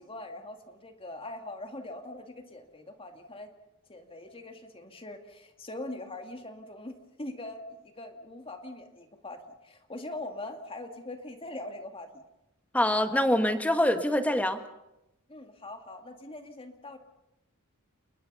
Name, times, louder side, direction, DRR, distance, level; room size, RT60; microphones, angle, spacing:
voice 1, 0.0-3.5 3.9-6.9 7.2-12.2 15.3-17.0, left 2 dB, 25° left, 5 dB, 2.3 m, -42 dB
voice 2, 12.7-14.6, left 1 dB, 5° left, 7 dB, 1.6 m, -25 dB
30.0 x 20.5 x 5.6 m, 0.90 s
head